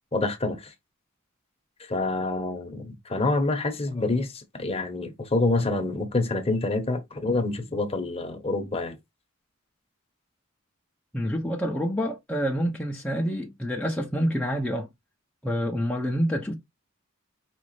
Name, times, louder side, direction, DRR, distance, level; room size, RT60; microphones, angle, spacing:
voice 1, 0.1-0.7 1.9-9.0, left 2 dB, 30° left, 1.0 m, -27 dB
voice 2, 11.1-14.9 15.4-16.5, equal, 5° left, 0.7 m, -27 dB
5.2 x 3.2 x 3.2 m
head